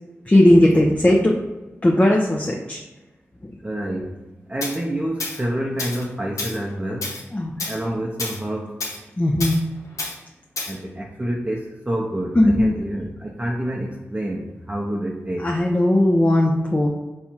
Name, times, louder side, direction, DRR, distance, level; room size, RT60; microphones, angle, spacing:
voice 1, 0.3-1.3 1.8-2.8 7.3-7.5 9.2-9.6 12.4-12.7 15.4-16.9, left 1 dB, 25° left, -1 dB, 0.6 m, -17 dB
voice 2, 3.6-4.2 4.5-7.2 7.7-8.8 10.7-15.5, right 1 dB, 20° right, -2 dB, 0.6 m, -28 dB
Tools, 4.6-4.8 5.2-5.4 5.8-6.1 6.4-6.6 7.0-7.2 7.6-7.8 8.2-8.4 8.8-9.0 9.4-9.6 10.0-10.2 10.6-10.8, left 3 dB, 80° left, 0.7 m, -29 dB
4.4 x 2.3 x 4.2 m, 1.1 s
cardioid pair, 40°, 5 cm